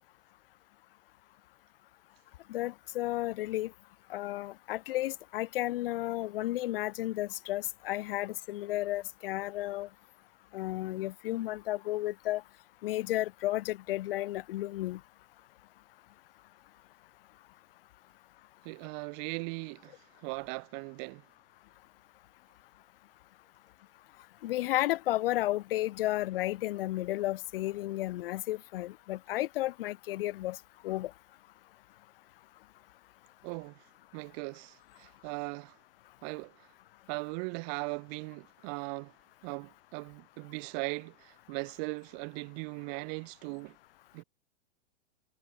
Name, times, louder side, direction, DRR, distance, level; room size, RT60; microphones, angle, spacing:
voice 1, 2.5-3.7 4.1-9.9 10.5-12.4 12.8-15.0 24.4-30.6 30.8-31.1, left 16 dB, 55° left, 1.0 m, -33 dB
voice 2, 18.6-21.2 33.4-33.8 34.1-35.8 36.2-36.7 37.1-39.1 39.4-43.7 44.1-44.2, right 40 dB or more, 40° right, 3.3 m, -39 dB
hypercardioid pair, 145°, 34 cm